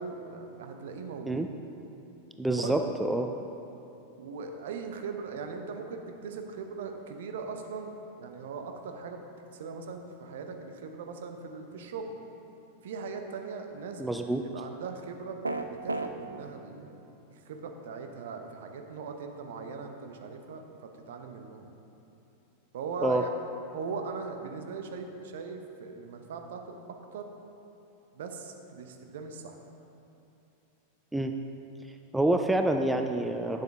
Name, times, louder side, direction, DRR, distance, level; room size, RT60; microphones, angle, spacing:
voice 1, 0.0-1.5 2.5-2.9 4.2-9.2 9.6-12.1 12.8-17.0 17.3-21.7 22.7-23.3 23.7-26.8 27.1-27.3 28.1-29.6, right 5 dB, 60° right, 5 dB, 0.7 m, -39 dB
voice 2, 2.4-3.3 14.0-14.4 23.0-23.2 31.1-31.3 32.1-33.6, right 1 dB, 5° right, 5 dB, 0.3 m, -27 dB
sound 1, 15.4-16.1, right 2 dB, 80° right, 0.4 m, -31 dB
9.1 x 7.6 x 3.5 m, 2.9 s
figure-of-eight pair, 90°, 0 cm